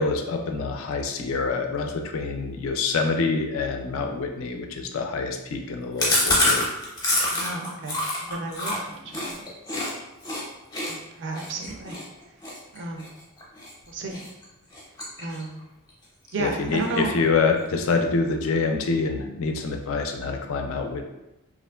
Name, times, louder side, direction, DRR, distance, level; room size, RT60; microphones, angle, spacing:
voice 1, 0.0-6.7 16.4-21.1, left 4 dB, 70° left, 5 dB, 0.3 m, -26 dB
Chewing mastication, 6.0-9.9 10.2-10.4 10.7-13.7 14.1-14.4 14.7-15.6 15.9-16.0 16.3-16.4 16.7-17.3, left 1 dB, 15° left, 0.6 m, -26 dB
voice 2, 7.3-8.0 8.3-9.4 10.9-12.0 12.7-13.1 13.9-14.2 15.2-15.6 16.3-17.1, right 3 dB, 55° right, 2 dB, 0.4 m, -32 dB
2.9 x 2.4 x 2.2 m, 0.96 s
head